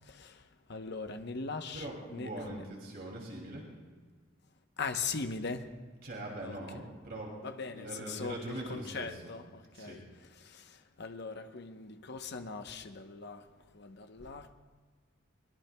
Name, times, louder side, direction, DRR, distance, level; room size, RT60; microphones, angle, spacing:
voice 1, 0.0-1.9 2.1-2.6 4.8-5.7 6.4-6.5 7.4-10.0 10.4-13.5 13.7-14.5, left 4 dB, 55° left, 0.9 m, -40 dB
voice 2, 1.7-3.7 6.0-7.3 7.7-9.2 9.7-10.0, right 1 dB, 50° right, 2.6 m, -42 dB
22.5 x 19.5 x 2.3 m
head